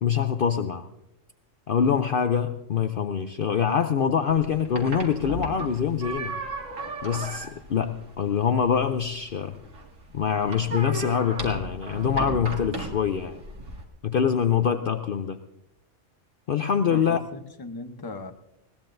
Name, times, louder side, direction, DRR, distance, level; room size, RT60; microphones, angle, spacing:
voice 1, 0.0-0.9 1.7-6.4 7.0-9.6 10.1-13.4 14.0-15.4 16.5-17.2, left 7 dB, 55° left, 8 dB, 0.7 m, -24 dB
sound 1, 4.3-13.8, right 2 dB, 85° right, 2.5 m, -36 dB
voice 2, 16.9-18.3, left 3 dB, 20° left, 7 dB, 0.8 m, -38 dB
20.5 x 18.0 x 2.6 m, 0.86 s
omnidirectional pair, 1.3 m